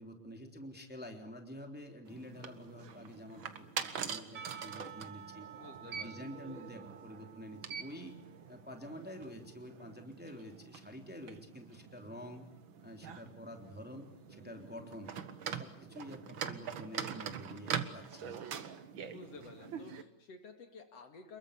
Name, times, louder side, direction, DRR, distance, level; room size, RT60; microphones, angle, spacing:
voice 1, 0.0-5.5 5.8-8.2 8.5-12.4 12.8-15.1 15.4-18.6, equal, 5° right, 4 dB, 3.1 m, -48 dB
sound 1, 2.0-20.0, right 7 dB, 50° right, 1.9 m, -44 dB
Percussion / Church bell, 4.4-9.4, right 8 dB, 75° right, 4.5 m, -52 dB
voice 2, 5.6-6.3 19.0-21.4, left 3 dB, 55° left, 6 dB, 3.0 m, -52 dB
28.5 x 22.5 x 8.4 m, 0.73 s
omnidirectional pair, 3.5 m